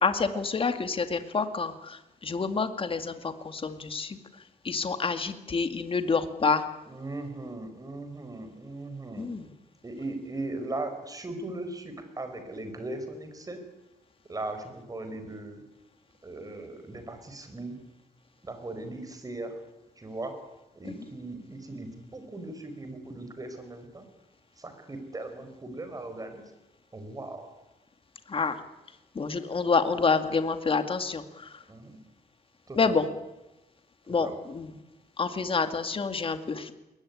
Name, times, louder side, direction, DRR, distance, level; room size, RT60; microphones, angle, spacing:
voice 1, 0.0-4.2 4.6-6.6 9.2-9.4 28.3-28.6 29.2-31.2 32.8-33.0 34.1-34.7 35.2-36.7, left 4 dB, 35° left, 8 dB, 2.2 m, -28 dB
voice 2, 6.9-9.3 9.8-13.6 14.3-15.6 16.2-17.7 18.4-19.6 20.0-20.4 20.7-24.0 24.6-26.4 26.9-27.5 31.7-32.0 32.7-33.0 34.2-34.4, right 2 dB, 20° right, 8 dB, 4.9 m, -38 dB
22.0 x 19.5 x 9.8 m, 1.0 s
wide cardioid pair, 135°, 16 cm